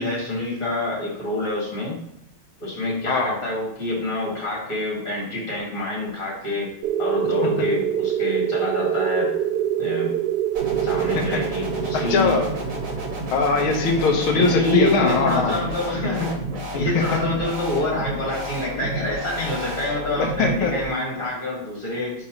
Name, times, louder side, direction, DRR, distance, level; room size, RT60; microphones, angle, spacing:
voice 1, 0.0-2.0 2.6-6.7 7.0-9.3 9.8-10.1 10.8-12.3 14.3-16.4 16.7-22.1, left 2 dB, 40° left, -4 dB, 2.8 m, -27 dB
voice 2, 3.1-3.4 11.3-11.4 11.9-12.5 13.3-15.6 16.7-17.0 20.2-20.7, left 4 dB, 80° left, 1 dB, 1.8 m, -21 dB
sound 1, 6.8-15.2, right 10 dB, 75° right, 1.0 m, -26 dB
sound 2, 10.5-20.8, right 1 dB, 40° right, 1.7 m, -31 dB
9.6 x 4.3 x 3.2 m, 0.81 s
omnidirectional pair, 2.3 m